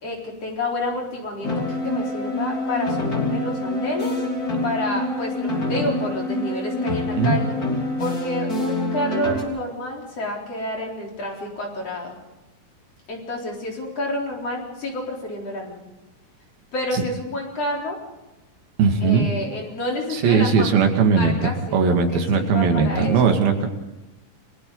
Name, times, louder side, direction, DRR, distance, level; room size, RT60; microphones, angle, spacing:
voice 1, 0.0-4.1 4.6-7.5 8.0-12.1 13.1-15.8 16.7-18.0 19.0-20.7 21.2-23.3, left 1 dB, 45° left, -1 dB, 4.9 m, -29 dB
sound 1, 1.4-9.4, left 1 dB, 25° left, 3.5 m, -26 dB
voice 2, 6.9-7.4 16.9-17.0 18.8-19.2 20.1-23.7, right 5 dB, 85° right, 4 dB, 4.2 m, -19 dB
29.5 x 22.5 x 4.0 m, 1.0 s
omnidirectional pair, 4.2 m